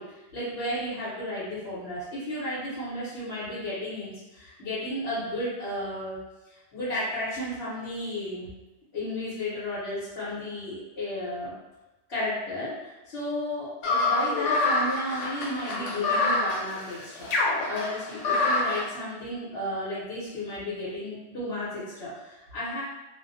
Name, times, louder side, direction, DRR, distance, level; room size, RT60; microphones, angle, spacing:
voice 1, 0.0-6.2 6.5-8.5 8.9-11.5 12.1-17.3 17.7-22.8, left 1 dB, 60° left, -11 dB, 1.0 m, -33 dB
sound 1, 13.8-18.8, left 2 dB, 90° left, 0.9 m, -26 dB
2.4 x 2.1 x 2.6 m, 1.1 s
omnidirectional pair, 1.2 m